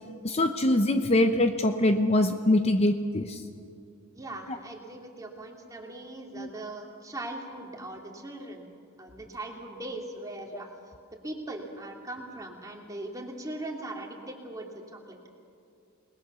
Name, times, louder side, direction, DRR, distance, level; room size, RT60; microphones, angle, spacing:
voice 1, 0.2-3.4 6.4-6.5, left 1 dB, 30° left, 7 dB, 0.7 m, -23 dB
voice 2, 4.1-8.7 9.0-10.7 11.2-15.3, right 1 dB, 15° right, 1 dB, 2.8 m, -40 dB
28.5 x 20.0 x 6.8 m, 2.4 s
head